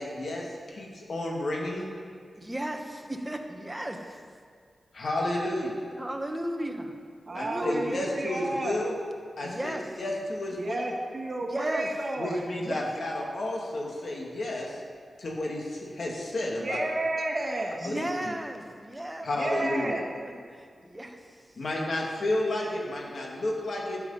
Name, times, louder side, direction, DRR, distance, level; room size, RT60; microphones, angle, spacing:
voice 1, 0.0-1.9 4.9-5.8 7.3-8.8 9.4-10.8 12.2-14.8 15.2-16.8 17.8-18.3 19.2-19.9 21.6-24.0, left 1 dB, 60° left, -2 dB, 1.9 m, -31 dB
voice 2, 2.4-4.2 6.0-7.0 7.3-8.0 9.4-9.9 11.5-11.9 12.5-13.3 17.8-19.4 19.9-21.4, right 1 dB, 10° right, 4 dB, 1.1 m, -36 dB
voice 3, 7.3-8.8 10.5-12.4 16.6-17.9 19.3-20.1, right 2 dB, 40° right, 0 dB, 1.6 m, -31 dB
12.5 x 8.1 x 5.5 m, 2.1 s
wide cardioid pair, 130°, 0 cm